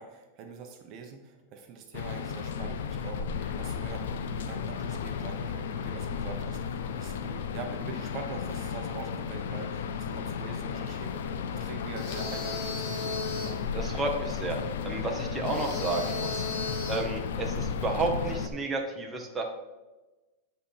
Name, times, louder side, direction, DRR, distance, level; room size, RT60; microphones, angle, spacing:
voice 1, 0.0-13.2, right 5 dB, 40° right, 4 dB, 1.0 m, -44 dB
sound 1, 1.9-18.5, left 6 dB, 80° left, 0.7 m, -34 dB
sound 2, 12.0-13.7 15.4-17.2, left 3 dB, 50° left, 1.7 m, -35 dB
voice 2, 13.7-14.6 14.8-16.4 16.9-19.5, right 3 dB, 10° right, 1 dB, 1.1 m, -31 dB
9.9 x 4.3 x 5.6 m, 1.1 s
supercardioid pair, 145°, 0 cm